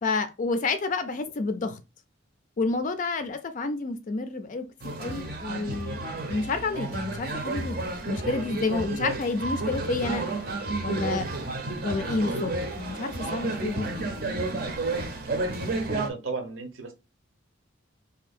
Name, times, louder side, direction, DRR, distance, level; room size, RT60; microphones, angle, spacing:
voice 1, 0.0-1.8 2.6-6.0 6.3-10.3 10.8-11.3 11.8-14.1, left 3 dB, 40° left, 0.4 m, -29 dB
sound 1, 4.8-16.1, right 2 dB, 50° right, 0.7 m, -31 dB
voice 2, 15.6-16.9, right 3 dB, 85° right, 0.9 m, -35 dB
2.7 x 2.7 x 4.0 m
head